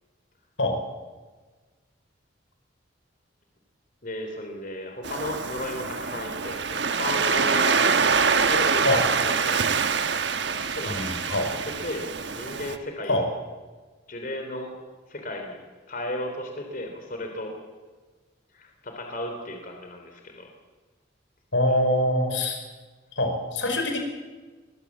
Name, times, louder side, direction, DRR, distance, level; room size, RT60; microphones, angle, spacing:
voice 1, 4.0-7.8 8.2-9.6 10.4-11.0 11.3-13.3 14.1-14.7 15.1-15.6 15.9-17.5 18.5-20.5 21.7-21.8, left 1 dB, 45° left, 3 dB, 3.5 m, -35 dB
Waves surf, 5.0-12.8, right 5 dB, 65° right, 1.4 m, -25 dB
voice 2, 10.9-11.5 13.1-13.3 21.5-22.6 23.1-24.0, left 1 dB, 80° left, 4 dB, 5.3 m, -24 dB
24.0 x 20.5 x 7.5 m, 1.3 s
head